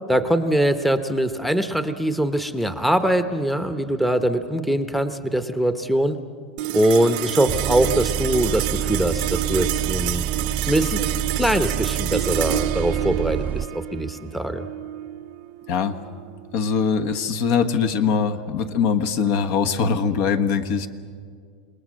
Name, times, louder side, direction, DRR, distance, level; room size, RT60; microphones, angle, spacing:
voice 1, 0.1-6.2 6.7-10.3 10.6-11.1 11.4-14.7, right 1 dB, ahead, 9 dB, 0.9 m, -22 dB
sound 1, 6.6-17.2, right 13 dB, 60° right, 0.8 m, -29 dB
Bus, 7.5-13.7, right 9 dB, 30° right, 0.5 m, -28 dB
voice 2, 16.5-20.9, left 6 dB, 55° left, 7 dB, 1.3 m, -22 dB
28.5 x 20.0 x 6.4 m, 2.1 s
supercardioid pair, 120°, 5 cm